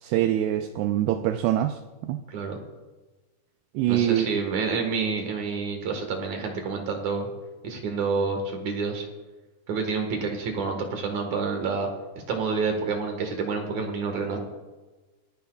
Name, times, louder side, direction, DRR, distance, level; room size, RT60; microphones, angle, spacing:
voice 1, 0.0-2.2 3.7-4.3, right 12 dB, 85° right, 8 dB, 2.3 m, -24 dB
voice 2, 2.3-2.6 3.9-7.3 7.6-9.1 9.7-11.9 12.3-14.4, right 4 dB, 60° right, 3 dB, 2.2 m, -28 dB
27.0 x 10.5 x 2.3 m, 1.2 s
omnidirectional pair, 5.1 m